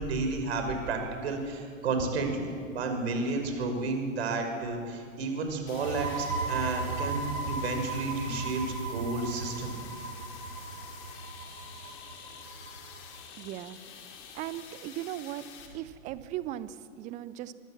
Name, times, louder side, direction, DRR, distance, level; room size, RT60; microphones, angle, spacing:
voice 1, 0.0-9.7, right 3 dB, 50° right, 5 dB, 5.5 m, -32 dB
sound 1, 5.7-15.7, left 7 dB, 30° left, 4.2 m, -48 dB
sound 2, 5.7-13.1, right 3 dB, 80° right, 3.8 m, -36 dB
voice 2, 13.4-13.8 14.3-15.5 15.7-17.5, right 13 dB, 20° right, 16 dB, 0.8 m, -38 dB
24.5 x 24.5 x 7.4 m, 2.2 s
figure-of-eight pair, 110°, 41 cm